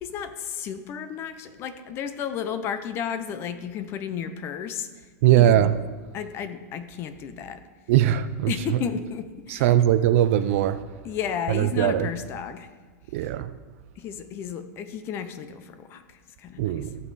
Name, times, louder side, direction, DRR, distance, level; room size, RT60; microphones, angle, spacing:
voice 1, 0.0-4.9 5.4-5.7 6.1-7.6 8.5-9.7 11.0-12.7 14.0-16.8, left 8 dB, 25° left, 0.6 m, -33 dB
voice 2, 5.2-5.8 7.9-8.5 9.5-10.8 11.5-12.1 13.1-13.5 16.6-17.0, right 12 dB, 50° right, 0.5 m, -20 dB
14.0 x 5.4 x 4.2 m
supercardioid pair, 160°, 9 cm